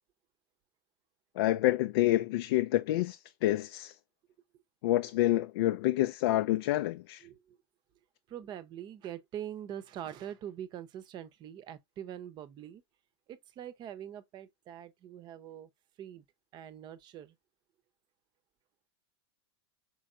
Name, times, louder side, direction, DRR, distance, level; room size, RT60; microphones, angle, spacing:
voice 1, 1.4-3.9 4.8-7.2, left 15 dB, 65° left, 0.4 m, -28 dB
voice 2, 7.2-7.6 8.3-12.8 13.3-15.7 16.0-16.2 16.5-17.3, right 10 dB, 30° right, 0.7 m, -43 dB
4.5 x 4.3 x 2.4 m
hypercardioid pair, 125°, 14 cm